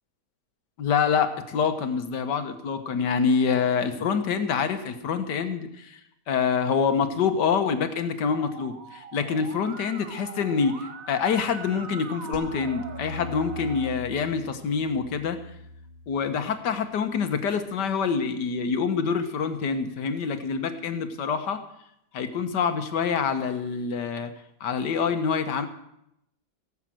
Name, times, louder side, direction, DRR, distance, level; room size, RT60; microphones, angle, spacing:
voice 1, 0.8-6.0 6.3-15.4 16.1-21.6 22.1-24.3 24.6-25.7, left 6 dB, 85° left, 9 dB, 1.8 m, -26 dB
Musical instrument, 8.3-13.9, right 5 dB, 55° right, 1.4 m, -42 dB
sound 1, 12.3-17.6, left 1 dB, 40° right, 1.7 m, -42 dB
17.5 x 7.3 x 7.7 m, 0.79 s
omnidirectional pair, 1.8 m